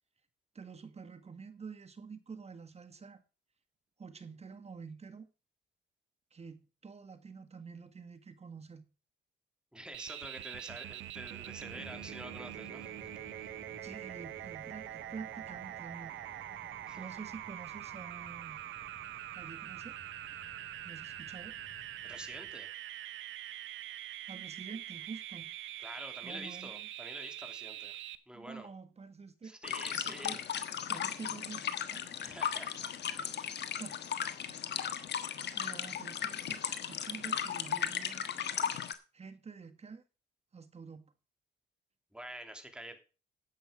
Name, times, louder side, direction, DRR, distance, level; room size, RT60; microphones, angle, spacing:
voice 1, 0.5-3.2 4.0-5.3 6.3-8.8 13.8-16.2 17.0-18.6 19.3-20.0 20.8-21.6 24.3-25.5 26.2-26.9 28.3-29.6 30.1-30.4 30.9-31.6 31.9-32.1 33.3-33.4 33.8-34.0 34.5-34.6 35.5-38.2 39.1-40.0 40.5-41.1, right 5 dB, 30° right, 1.7 m, -48 dB
voice 2, 9.7-13.1 13.4-13.5 16.8-17.1 22.0-22.7 25.8-28.0 28.3-28.7 29.4-30.4 32.2-33.6 42.1-43.0, right 1 dB, 5° right, 2.9 m, -47 dB
sound 1, 9.9-28.1, right 13 dB, 75° right, 0.9 m, -44 dB
sound 2, 11.6-22.5, left 3 dB, 30° left, 8.0 m, -57 dB
sound 3, 29.6-38.9, left 8 dB, 60° left, 1.4 m, -36 dB
11.5 x 8.2 x 5.1 m
cardioid pair, 90°, 20 cm